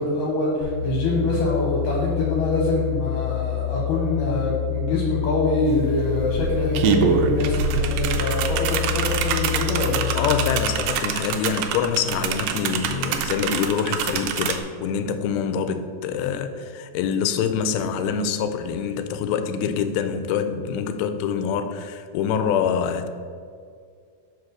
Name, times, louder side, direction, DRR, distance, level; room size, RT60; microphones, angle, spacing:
voice 1, 0.0-10.1, left 2 dB, 70° left, -3 dB, 2.4 m, -24 dB
sound 1, 0.6-10.6, left 22 dB, 60° right, 1.7 m, -28 dB
sound 2, 5.7-5.8 6.1-14.6, right 7 dB, 80° right, 2.0 m, -25 dB
voice 2, 10.1-23.1, left 7 dB, 90° left, 9 dB, 2.4 m, -25 dB
5.3 x 5.2 x 6.3 m, 2.2 s
omnidirectional pair, 4.2 m